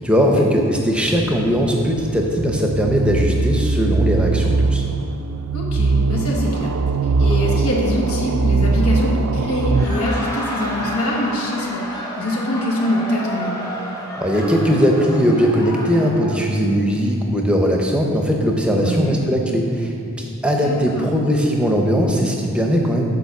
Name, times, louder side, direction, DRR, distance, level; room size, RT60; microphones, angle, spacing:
voice 1, 0.0-4.8 14.2-23.0, equal, 5° right, 1 dB, 0.6 m, -19 dB
sound 1, 1.0-9.9, right 3 dB, 75° right, 0.4 m, -20 dB
voice 2, 5.5-6.7 7.2-13.6 18.7-19.2 20.6-21.1, left 1 dB, 85° left, -2 dB, 1.3 m, -24 dB
Laughter, 9.6-16.4, equal, 15° left, 0.9 m, -30 dB
6.9 x 4.9 x 5.9 m, 2.7 s
head